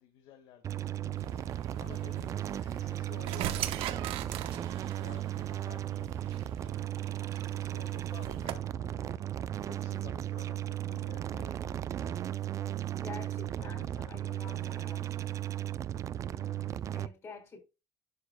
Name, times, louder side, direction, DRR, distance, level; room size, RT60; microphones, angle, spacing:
voice 1, 0.0-3.7 4.3-15.3, left 9 dB, 80° left, 1.7 m, -55 dB
sound 1, 0.6-17.1, right 12 dB, 35° right, 0.4 m, -36 dB
sound 2, 1.2-8.5, right 12 dB, 75° right, 1.0 m, -41 dB
voice 2, 13.0-15.1 16.3-17.6, left 4 dB, 30° left, 3.6 m, -48 dB
11.5 x 6.6 x 2.2 m
cardioid pair, 165°, 9 cm